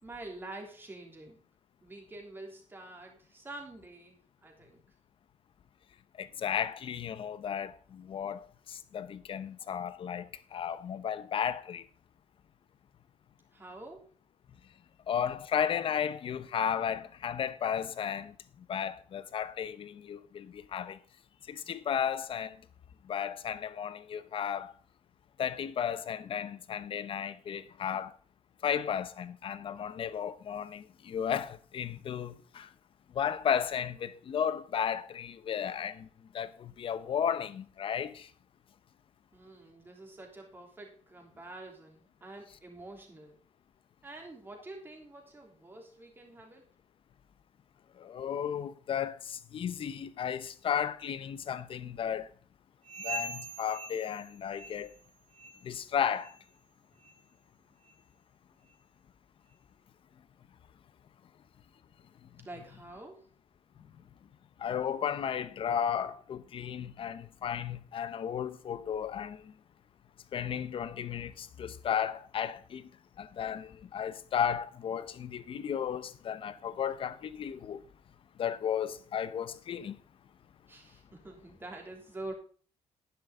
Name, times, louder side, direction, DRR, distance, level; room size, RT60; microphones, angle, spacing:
voice 1, 0.0-1.4 1.8-4.8 13.5-14.1 39.3-43.4 44.0-46.6 62.4-63.2 80.7-82.3, right 2 dB, 20° right, 3.4 m, -47 dB
voice 2, 6.2-11.8 15.1-18.3 18.7-21.0 21.5-22.6 23.1-24.7 25.4-28.1 28.6-32.7 33.1-36.1 36.3-38.3 48.0-52.3 53.0-54.9 55.6-56.3 64.6-69.4 70.3-72.8 73.2-77.8 78.4-79.9, left 8 dB, 50° left, 0.9 m, -34 dB
sound 1, 52.8-55.1 55.3-55.7 56.2-56.4 57.0-57.2 57.9-58.0 58.7-58.8, right 2 dB, 85° right, 2.5 m, -42 dB
10.5 x 10.5 x 3.7 m
cardioid pair, 145°, 12 cm